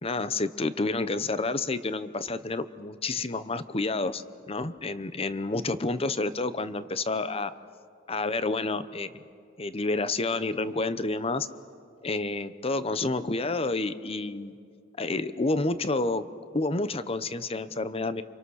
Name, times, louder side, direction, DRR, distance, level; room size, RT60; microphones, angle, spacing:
voice 1, 0.0-7.5 8.1-9.1 9.6-11.5 12.0-14.5 15.0-16.2 16.5-18.2, left 3 dB, 30° left, 13 dB, 0.9 m, -29 dB
29.0 x 26.0 x 6.5 m, 2.2 s
head